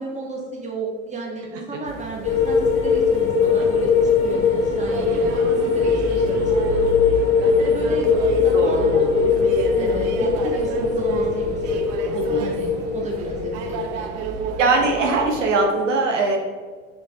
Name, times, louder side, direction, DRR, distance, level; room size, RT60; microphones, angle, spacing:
voice 1, 0.0-7.0 7.6-8.9 9.7-14.4, right 3 dB, 20° right, -1 dB, 1.8 m, -33 dB
sound 1, 1.9-15.5, right 3 dB, 40° right, 0.9 m, -30 dB
sound 2, 2.2-13.9, left 5 dB, 30° left, 1.3 m, -21 dB
voice 2, 8.5-9.1 12.1-12.5 14.6-16.4, right 3 dB, 70° right, 1 dB, 1.0 m, -21 dB
7.0 x 5.0 x 3.7 m, 1.5 s
figure-of-eight pair, 80°, 39 cm